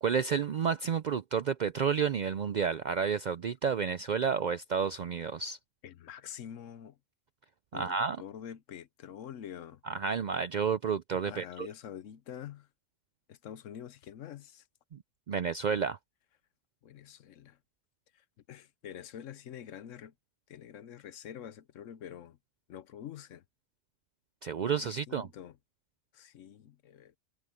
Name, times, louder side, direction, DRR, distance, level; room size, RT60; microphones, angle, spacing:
voice 1, 0.0-5.6 7.7-8.2 9.8-11.7 14.9-15.0 15.3-16.0 24.4-25.3, right 6 dB, 65° right, 0.4 m, -30 dB
voice 2, 5.8-7.0 7.7-9.8 11.3-12.7 13.3-14.6 16.8-17.6 18.1-20.1 20.5-22.4 22.7-23.4 24.7-25.6 26.1-27.1, left 9 dB, 90° left, 1.1 m, -46 dB
omnidirectional pair, 1.3 m